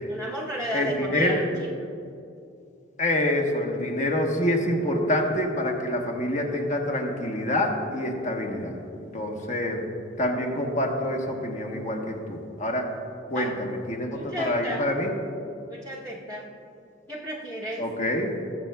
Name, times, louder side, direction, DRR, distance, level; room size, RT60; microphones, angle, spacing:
voice 1, 0.1-1.9 13.3-13.6 14.1-14.8 15.7-16.5 17.1-17.8, equal, 10° left, -8 dB, 0.9 m, -33 dB
voice 2, 0.7-1.4 3.0-9.8 10.2-12.9 13.3-15.1 17.8-18.3, left 1 dB, 40° left, 1 dB, 1.2 m, -26 dB
20.5 x 7.5 x 2.3 m, 2.5 s
head